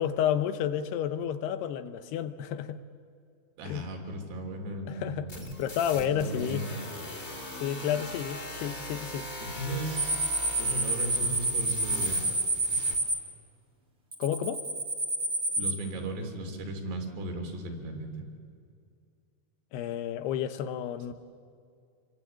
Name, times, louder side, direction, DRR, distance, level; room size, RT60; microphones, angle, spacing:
voice 1, 0.0-2.8 3.7-3.9 4.9-6.6 7.6-9.3 14.2-14.6 19.7-21.1, left 9 dB, 80° left, 11 dB, 3.0 m, -31 dB
voice 2, 3.6-5.5 5.9-6.8 9.4-10.1 10.6-12.5 12.7-12.8 15.6-18.3, right 1 dB, 80° right, 3 dB, 5.4 m, -36 dB
sound 1, 5.3-13.0, left 1 dB, 15° left, 3.2 m, -41 dB
sound 2, 10.0-13.1 14.1-15.8, right 2 dB, 25° right, 1.7 m, -28 dB
28.0 x 23.5 x 8.7 m, 2.3 s
omnidirectional pair, 4.7 m